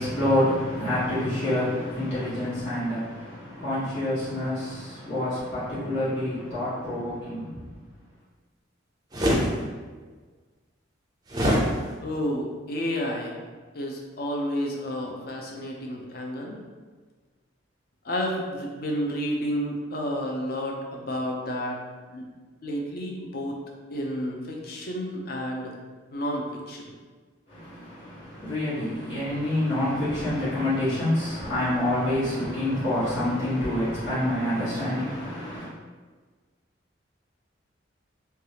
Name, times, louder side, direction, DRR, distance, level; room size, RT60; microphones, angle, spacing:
voice 1, 0.0-7.6 27.5-35.7, left 1 dB, 65° left, -13 dB, 1.4 m, -27 dB
sound 1, 9.1-9.5 11.3-11.6, equal, 20° right, 0.4 m, -22 dB
voice 2, 12.0-13.3 13.7-16.6 18.0-21.8 22.1-22.3 22.6-23.6 23.9-25.7 26.1-26.8, equal, 50° left, 0 dB, 0.5 m, -30 dB
3.3 x 2.3 x 2.8 m, 1.4 s
head